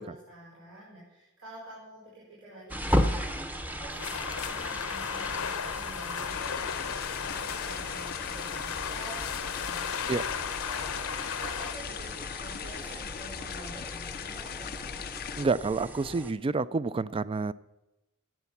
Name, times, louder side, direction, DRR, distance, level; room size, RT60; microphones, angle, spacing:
voice 1, 0.0-10.3 10.7-15.0, right 1 dB, 85° right, -8 dB, 5.0 m, -48 dB
sound 1, 2.7-16.3, equal, 10° right, 0.8 m, -36 dB
sound 2, 4.0-11.7, left 7 dB, 75° left, 0.8 m, -35 dB
sound 3, 6.3-15.5, left 9 dB, 45° left, 0.4 m, -40 dB
voice 2, 15.4-17.5, right 4 dB, 25° right, 17 dB, 0.3 m, -29 dB
12.5 x 9.1 x 7.2 m, 0.98 s
head